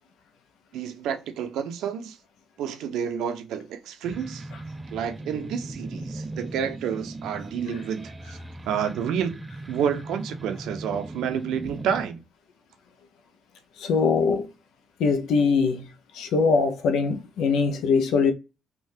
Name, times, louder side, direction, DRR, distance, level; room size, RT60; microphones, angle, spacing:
voice 1, 0.7-2.2 2.6-4.5 4.9-8.4 8.7-9.4 9.7-12.2, right 8 dB, 85° right, 0.5 m, -29 dB
Dark brooding distorted noise, 4.0-12.0, right 2 dB, 20° right, 0.3 m, -38 dB
voice 2, 13.8-14.5 15.0-15.9 16.1-18.3, left 5 dB, 85° left, 0.5 m, -22 dB
3.3 x 2.2 x 2.6 m
cardioid pair, 90°, 0 cm